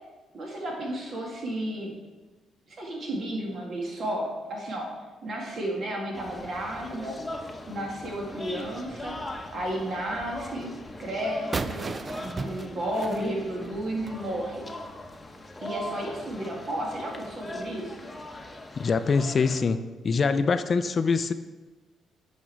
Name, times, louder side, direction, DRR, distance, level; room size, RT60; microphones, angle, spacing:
voice 1, 0.3-1.9 2.7-4.9 5.2-7.2 7.7-9.2 9.5-10.7 11.0-14.7 15.6-18.1, right 1 dB, 55° right, -1 dB, 2.1 m, -32 dB
sound 1, 6.1-19.6, left 1 dB, 20° left, 0.9 m, -41 dB
sound 2, 11.5-14.2, right 4 dB, 35° right, 0.4 m, -35 dB
voice 2, 18.8-21.3, left 5 dB, 40° left, 11 dB, 0.4 m, -24 dB
8.5 x 5.2 x 4.6 m, 1.3 s
cardioid pair, 90°, 0 cm